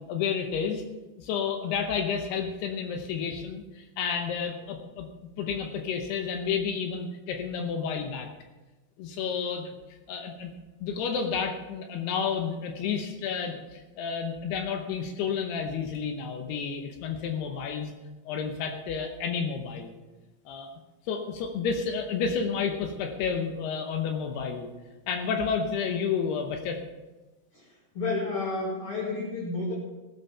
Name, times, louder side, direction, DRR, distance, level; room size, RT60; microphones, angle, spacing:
voice 1, 0.1-0.8 1.2-5.1 5.4-8.3 9.0-9.8 10.1-10.5 10.8-17.9 18.3-19.9 20.5-20.8 21.1-24.7 25.1-26.8, left 6 dB, 80° left, 4 dB, 2.9 m, -31 dB
voice 2, 27.5-29.7, left 3 dB, 40° left, -4 dB, 2.7 m, -31 dB
16.0 x 8.0 x 5.6 m, 1.1 s
omnidirectional pair, 4.7 m